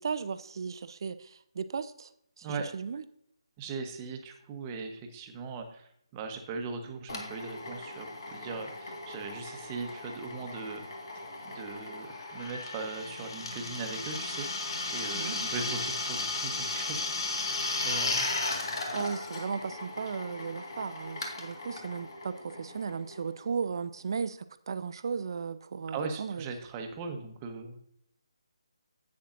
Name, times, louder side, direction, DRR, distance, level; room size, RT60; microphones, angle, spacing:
voice 1, 0.0-2.1 2.4-2.5 2.7-3.0 15.1-15.4 18.9-24.4 24.7-26.5, right 5 dB, 50° right, 12 dB, 0.7 m, -35 dB
voice 2, 3.6-10.8 11.4-18.3 25.9-27.9, right 4 dB, 20° right, 4 dB, 1.1 m, -39 dB
Drill, 7.1-23.4, left 2 dB, 55° left, 1.9 m, -36 dB
11.0 x 8.5 x 2.6 m, 0.70 s
figure-of-eight pair, 155°, 3 cm